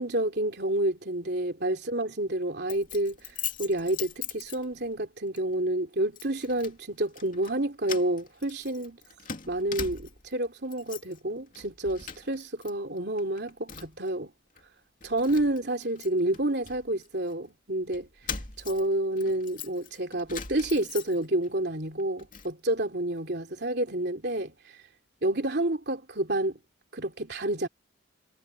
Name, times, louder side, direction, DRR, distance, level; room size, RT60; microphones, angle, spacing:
voice 1, 0.0-9.0 9.5-14.3 15.0-18.1 18.6-24.8 25.2-26.6 26.9-27.7, right 1 dB, 55° right, 3.4 m, -29 dB
Keys jangling, 2.7-5.0 5.4-5.6 6.2-6.8 7.1-7.6 7.8-10.3 10.6-11.2 11.5-12.7 13.0-14.1 14.6-14.7 15.0-17.3 17.9-21.5 21.8-22.5, left 7 dB, 40° left, 2.7 m, -41 dB
head